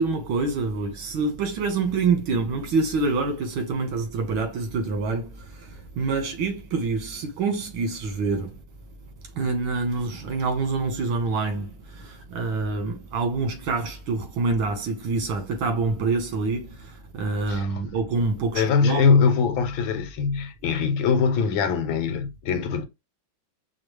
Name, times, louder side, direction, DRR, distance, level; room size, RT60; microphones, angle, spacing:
voice 1, 0.0-8.6 9.4-19.1, right 4 dB, 80° right, 2.0 m, -26 dB
voice 2, 17.5-17.8 18.5-22.9, left 5 dB, 80° left, 1.6 m, -22 dB
5.2 x 2.3 x 3.1 m
omnidirectional pair, 2.2 m